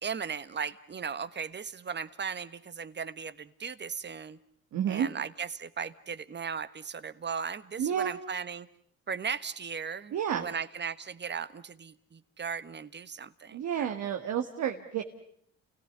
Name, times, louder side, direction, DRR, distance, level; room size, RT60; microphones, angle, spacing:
voice 1, 0.0-4.4 4.9-8.7 9.1-13.9, right 6 dB, 35° right, 14 dB, 1.4 m, -37 dB
voice 2, 4.7-5.1 7.8-8.2 10.1-10.5 13.5-15.0, right 9 dB, 75° right, 4 dB, 1.9 m, -30 dB
29.0 x 18.0 x 9.7 m, 0.67 s
cardioid pair, 90°, 30 cm